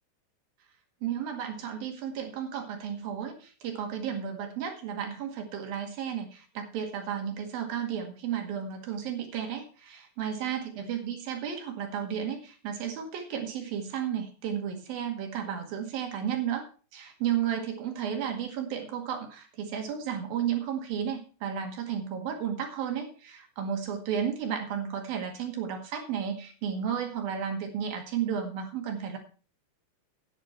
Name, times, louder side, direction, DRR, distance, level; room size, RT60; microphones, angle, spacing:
voice 1, 1.0-16.7 16.9-29.2, right 8 dB, 60° right, 4 dB, 3.6 m, -33 dB
11.0 x 9.3 x 4.6 m, 0.37 s
omnidirectional pair, 4.9 m